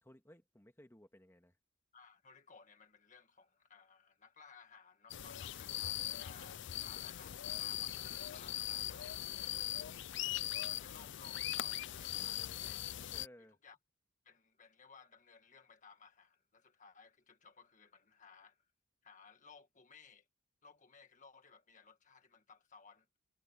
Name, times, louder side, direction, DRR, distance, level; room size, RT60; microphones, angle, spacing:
voice 1, 0.0-1.6 13.1-13.6, equal, 10° left, 2.0 m, -59 dB
voice 2, 1.9-9.9 10.6-12.9 13.6-13.8 14.2-18.6 19.0-20.3 20.6-23.1, left 5 dB, 40° left, 1.7 m, -60 dB
sound 1, 5.1-13.3, left 13 dB, 60° left, 0.5 m, -40 dB
head